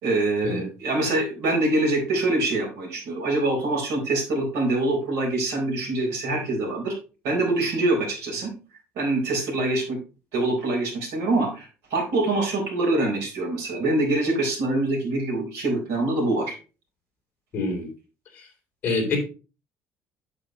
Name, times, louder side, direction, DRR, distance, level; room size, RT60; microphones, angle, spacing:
voice 1, 0.0-6.9 7.2-8.5 9.0-10.0 10.3-16.5, right 2 dB, 65° right, 1 dB, 4.2 m, -24 dB
voice 2, 17.5-17.9 18.8-19.2, left 3 dB, 30° left, 1 dB, 3.6 m, -25 dB
8.5 x 7.8 x 3.1 m, 0.33 s
cardioid pair, 175°, 5 cm